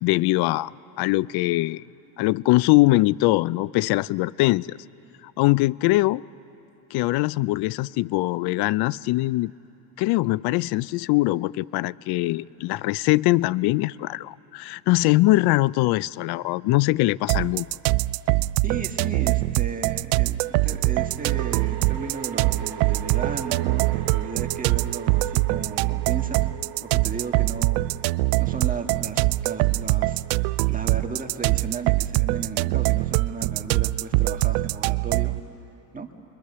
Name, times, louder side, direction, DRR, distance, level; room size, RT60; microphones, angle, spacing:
voice 1, 0.0-0.7 1.0-1.8 2.2-4.8 5.4-6.2 6.9-9.5 10.0-17.7, left 19 dB, 55° left, 0.5 m, -22 dB
sound 1, 17.3-35.4, right 21 dB, 85° right, 0.5 m, -23 dB
sound 2, 17.6-17.7 20.6-31.9, right 11 dB, 60° right, 2.6 m, -41 dB
voice 2, 18.6-26.5 26.8-27.8 28.4-35.4 35.9-36.1, right 5 dB, 15° right, 1.7 m, -35 dB
29.0 x 23.0 x 6.8 m
supercardioid pair, 105°, 47 cm